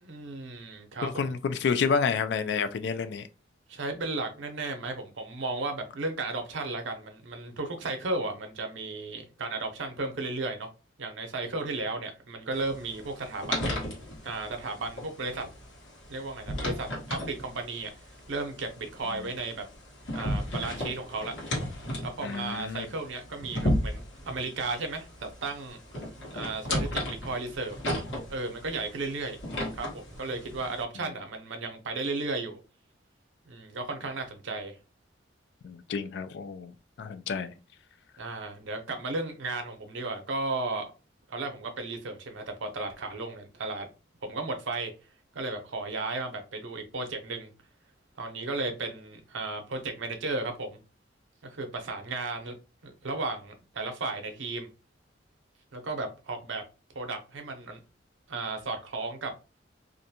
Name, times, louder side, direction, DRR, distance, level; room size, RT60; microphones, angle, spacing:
voice 1, 0.0-1.3 3.7-10.7 11.0-13.8 14.2-15.4 16.1-17.9 18.3-19.6 20.1-21.3 22.0-25.8 26.3-27.8 28.3-29.4 29.7-32.6 33.5-34.8 38.2-40.8 41.3-43.9 44.3-44.9 45.3-47.5 48.2-50.8 51.4-52.6 52.8-54.7 55.7-56.6 56.9-57.8 58.3-59.3, right 3 dB, 85° right, 0.7 m, -34 dB
voice 2, 1.0-3.2 22.2-22.9 35.6-36.7 37.0-37.5, left 5 dB, 65° left, 0.3 m, -29 dB
sound 1, 12.5-30.8, equal, 80° left, 1.1 m, -35 dB
2.5 x 2.2 x 2.8 m
head